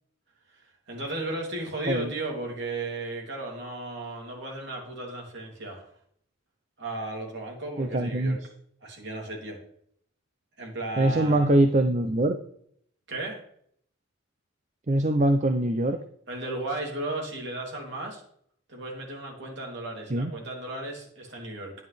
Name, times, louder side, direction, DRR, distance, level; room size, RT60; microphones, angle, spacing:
voice 1, 0.5-5.9 6.8-8.4 8.8-9.6 10.6-11.5 13.1-13.4 16.3-18.2 18.7-21.7, right 2 dB, 55° right, -1 dB, 3.1 m, -35 dB
voice 2, 7.8-8.4 11.0-12.4 14.9-16.0 20.1-20.3, right 1 dB, 35° right, 7 dB, 0.6 m, -23 dB
9.7 x 9.4 x 3.4 m, 0.65 s
head